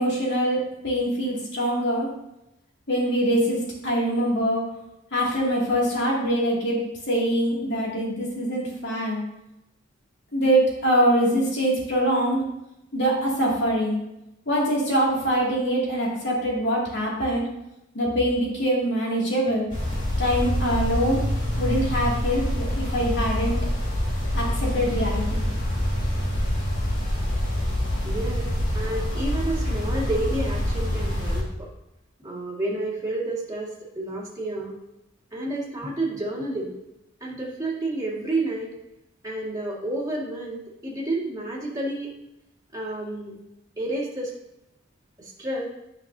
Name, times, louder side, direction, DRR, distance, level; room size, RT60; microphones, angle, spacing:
voice 1, 0.0-2.1 2.9-4.6 5.1-6.8 7.1-9.2 10.3-12.4 12.9-14.0 14.5-17.5 17.9-19.7 20.2-21.2 21.6-23.6 24.3-25.4, equal, 60° left, -4 dB, 2.5 m, -24 dB
sound 1, 19.7-31.4, left 1 dB, 40° left, 2.1 m, -26 dB
voice 2, 28.0-28.5 28.7-31.7 32.2-33.7 33.9-34.7 35.3-36.7 37.2-38.7 39.2-42.1 42.7-43.4 43.8-44.3 45.2-45.7, right 2 dB, 15° right, -5 dB, 2.0 m, -30 dB
9.5 x 6.0 x 2.7 m, 0.89 s
head